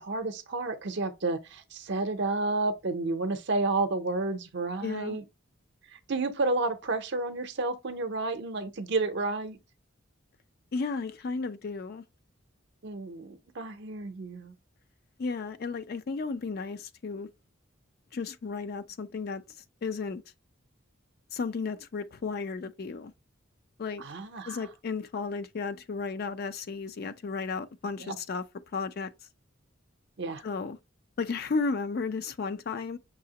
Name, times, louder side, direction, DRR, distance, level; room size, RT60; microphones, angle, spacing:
voice 1, 0.0-5.2 5.9-9.6 12.8-14.5 24.0-24.6 28.0-28.2 30.2-30.4, right 3 dB, 60° right, 0.6 m, -31 dB
voice 2, 4.8-5.2 10.7-12.0 15.2-17.3 18.1-19.4 19.8-20.2 21.3-23.1 23.8-24.0 24.5-28.4 28.7-29.1 30.4-30.8 31.2-33.0, left 4 dB, 50° left, 0.4 m, -33 dB
6.0 x 2.8 x 2.8 m
head